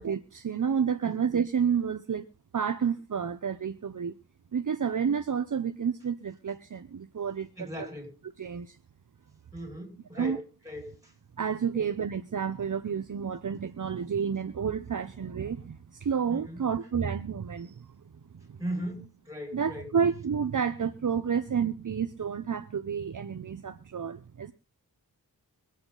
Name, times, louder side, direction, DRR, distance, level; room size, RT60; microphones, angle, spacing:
voice 1, 0.0-2.2 2.5-4.1 4.5-7.9 8.4-8.8 10.1-10.4 11.4-17.9 18.3-18.6 19.5-24.5, right 7 dB, 50° right, 0.8 m, -30 dB
voice 2, 7.6-8.1 9.5-11.1 11.7-11.9 16.3-16.6 18.6-19.9, equal, 10° right, 6.6 m, -38 dB
23.0 x 8.7 x 4.0 m
wide cardioid pair, 110°, 39 cm